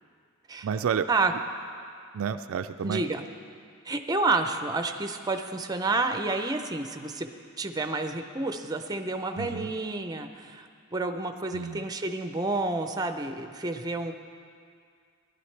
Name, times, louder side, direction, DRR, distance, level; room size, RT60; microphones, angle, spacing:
voice 1, 0.6-1.1 2.1-3.1 9.4-9.7 11.5-11.9, right 7 dB, 70° right, 10 dB, 0.3 m, -30 dB
voice 2, 2.8-3.2 3.9-7.3 7.6-14.1, right 3 dB, 20° right, 7 dB, 0.5 m, -29 dB
17.0 x 11.0 x 3.3 m, 2.2 s
head